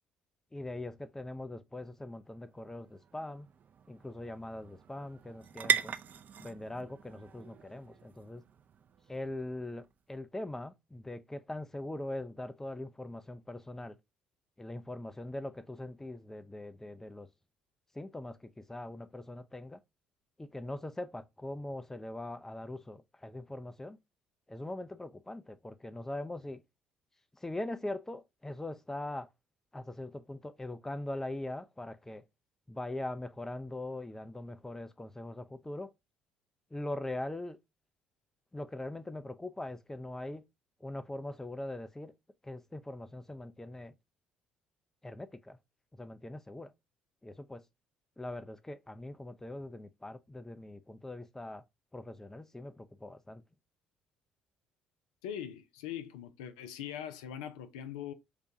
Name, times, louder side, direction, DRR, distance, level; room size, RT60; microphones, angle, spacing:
voice 1, 0.5-3.5 3.9-5.9 6.4-8.4 9.1-14.0 14.6-17.3 17.9-19.8 20.4-24.0 24.5-26.6 27.3-29.3 29.7-32.2 32.7-35.9 36.7-37.6 38.5-40.4 40.8-42.1 42.4-43.9 45.0-45.6 45.9-46.7 47.2-47.6 48.2-51.6 51.9-53.4, left 1 dB, 10° left, 0.5 m, -41 dB
Pots a out sir, 2.1-9.9, right 7 dB, 50° right, 0.4 m, -39 dB
voice 2, 55.2-58.1, left 10 dB, 80° left, 0.4 m, -41 dB
6.6 x 2.3 x 2.7 m
hypercardioid pair, 55°, 4 cm